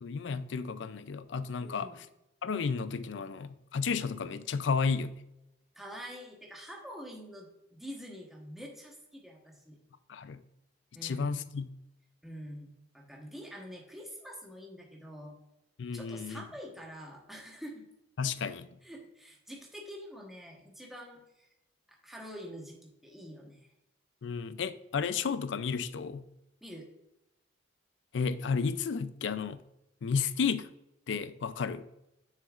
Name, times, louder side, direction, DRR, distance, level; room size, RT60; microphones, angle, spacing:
voice 1, 0.0-1.9 2.4-5.2 10.1-10.4 11.0-11.7 15.8-16.4 18.2-18.7 24.2-26.3 28.1-29.6 30.0-30.7 31.1-31.9, left 5 dB, 80° left, 13 dB, 0.4 m, -32 dB
voice 2, 1.6-2.0 5.7-9.8 10.9-11.4 12.2-15.4 15.9-17.9 18.8-21.5 21.9-23.7 26.6-26.9, equal, ahead, -1 dB, 1.1 m, -46 dB
7.1 x 6.5 x 2.4 m, 0.90 s
head